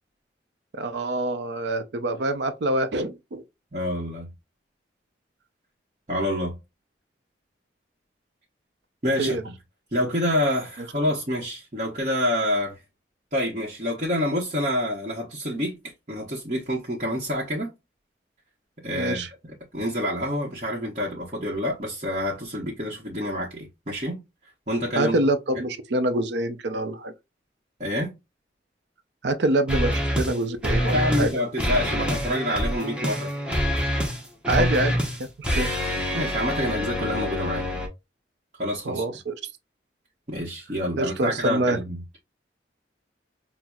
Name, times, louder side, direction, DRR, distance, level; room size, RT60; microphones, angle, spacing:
voice 1, 0.7-3.4 9.2-9.4 18.9-19.3 25.0-27.1 29.2-31.3 34.5-34.9 35.2-35.3 35.5-35.7 38.8-39.3 41.0-41.8, right 2 dB, 70° right, 0.5 m, -25 dB
voice 2, 3.7-4.3 6.1-6.6 9.0-9.5 9.9-12.8 13.3-17.7 18.8-24.2 24.7-25.2 25.5-25.6 27.8-28.1 30.9-33.3 34.6-34.7 36.1-37.7 38.6-39.0 40.3-42.0, left 1 dB, 40° right, 0.9 m, -27 dB
sound 1, 29.7-30.4 30.6-31.3 31.6-37.9, equal, 5° right, 0.7 m, -26 dB
5.6 x 2.0 x 2.3 m
head